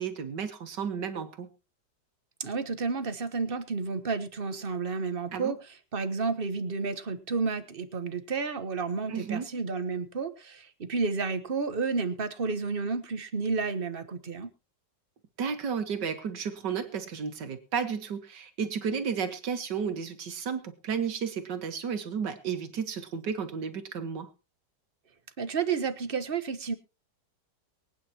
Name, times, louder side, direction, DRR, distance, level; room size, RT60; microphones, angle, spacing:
voice 1, 0.0-1.5 5.3-5.5 9.1-9.5 15.4-24.3, right 6 dB, 80° right, 9 dB, 2.1 m, -33 dB
voice 2, 2.4-5.6 5.9-14.5 25.4-26.7, right 4 dB, 35° right, 10 dB, 1.2 m, -31 dB
23.5 x 9.3 x 2.9 m, 0.29 s
omnidirectional pair, 1.9 m